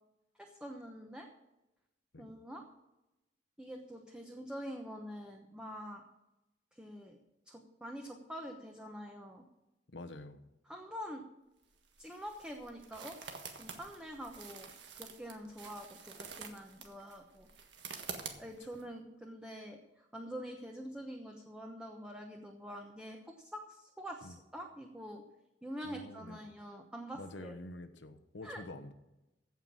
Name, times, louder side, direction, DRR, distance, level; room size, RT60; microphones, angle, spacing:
voice 1, 0.4-1.3 2.2-2.6 3.6-6.0 6.7-7.2 7.5-9.4 10.7-11.2 12.0-13.2 13.5-14.7 15.0-17.5 18.4-25.2 25.6-27.6 28.4-28.6, equal, 5° right, 2 dB, 1.0 m, -46 dB
voice 2, 9.9-10.5 24.2-24.3 25.8-26.4 27.1-28.9, left 2 dB, 90° left, 8 dB, 1.1 m, -47 dB
sound 1, 11.6-18.8, right 6 dB, 85° right, 1.6 m, -48 dB
15.5 x 5.9 x 7.4 m, 0.97 s
head